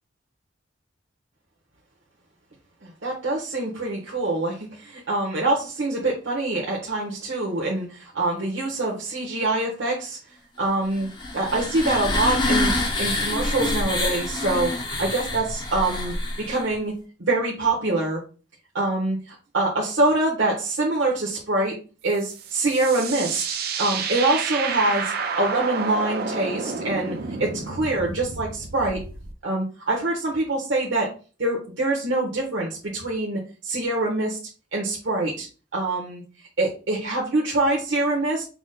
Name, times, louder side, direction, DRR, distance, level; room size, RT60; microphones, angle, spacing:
voice 1, 2.8-10.2 10.6-11.1 11.3-12.7 13.0-16.1 16.5-16.9 17.3-18.2 18.7-21.7 22.0-23.4 23.8-29.0 29.4-31.1 31.4-34.4 34.7-35.5 35.7-36.2 36.6-38.4, right 2 dB, 85° right, -3 dB, 1.1 m, -25 dB
sound 1, 10.9-16.7, left 1 dB, 25° left, 0.9 m, -26 dB
sound 2, 22.1-29.3, right 5 dB, 55° right, 0.6 m, -30 dB
6.0 x 2.1 x 3.9 m, 0.35 s
head